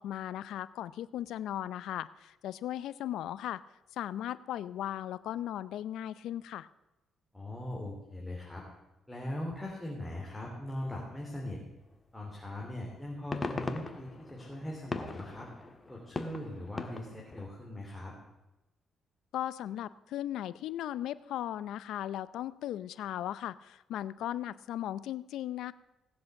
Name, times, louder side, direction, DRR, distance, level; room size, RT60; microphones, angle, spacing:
voice 1, 0.0-3.6 3.9-6.7 19.3-25.7, left 12 dB, 80° left, 17 dB, 0.5 m, -37 dB
voice 2, 7.3-8.7 9.1-11.6 12.1-15.5 15.9-18.1, left 1 dB, 5° left, -3 dB, 3.4 m, -40 dB
sound 1, 12.2-12.4 12.9-17.5, left 3 dB, 25° left, 1.5 m, -40 dB
18.0 x 7.8 x 7.0 m, 0.98 s
cardioid pair, 90°, 0 cm